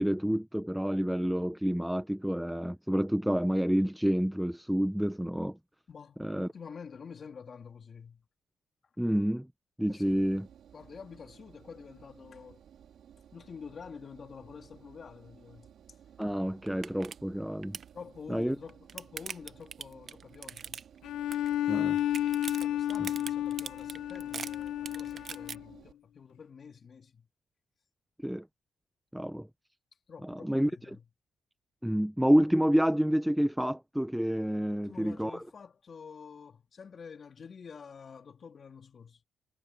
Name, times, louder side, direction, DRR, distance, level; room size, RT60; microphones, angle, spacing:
voice 1, 0.0-5.6 6.2-6.5 9.0-9.5 9.8-10.5 16.2-17.8 18.3-18.6 21.7-22.0 23.0-23.1 28.2-28.5 29.1-29.5 30.2-30.7 31.8-35.4, equal, 5° right, 0.7 m, -28 dB
voice 2, 5.9-8.3 9.9-10.2 10.7-12.6 13.3-15.7 17.9-20.8 22.6-27.3 30.1-31.0 34.7-39.2, left 6 dB, 45° left, 3.1 m, -48 dB
Engine, 10.0-25.9, right 9 dB, 65° right, 3.8 m, -57 dB
sound 1, 16.2-16.3 16.7-17.2 17.4-17.9 18.5-21.1 21.3-21.7 22.0-25.6, right 7 dB, 50° right, 0.9 m, -41 dB
Bowed string instrument, 21.0-25.7, left 12 dB, 80° left, 0.9 m, -32 dB
cardioid pair, 90°, 0 cm